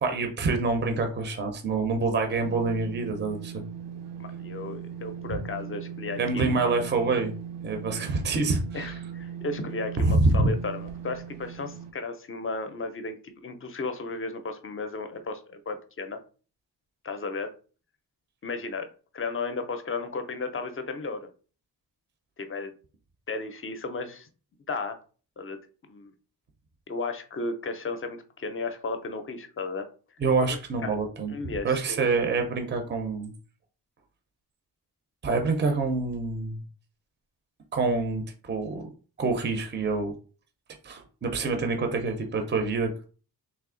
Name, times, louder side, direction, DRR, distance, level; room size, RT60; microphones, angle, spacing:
voice 1, 0.0-3.6 5.3-5.4 6.2-7.3 7.6-8.9 10.0-10.5 30.2-31.3 31.6-33.3 35.2-36.6 37.7-38.8 39.2-40.1 40.8-42.9, right 3 dB, 30° right, 4 dB, 0.5 m, -26 dB
sound 1, 2.4-11.9, right 8 dB, 85° right, 0.6 m, -39 dB
voice 2, 4.2-6.7 8.7-16.2 17.0-17.5 18.4-18.9 19.1-21.3 22.4-22.7 23.3-24.3 24.7-25.0 25.4-25.6 25.8-26.1 26.9-29.9 30.5-31.0 31.3-32.1 41.4-41.5, left 3 dB, 35° left, 8 dB, 0.5 m, -34 dB
3.4 x 2.7 x 3.7 m, 0.38 s
wide cardioid pair, 155°, 40 cm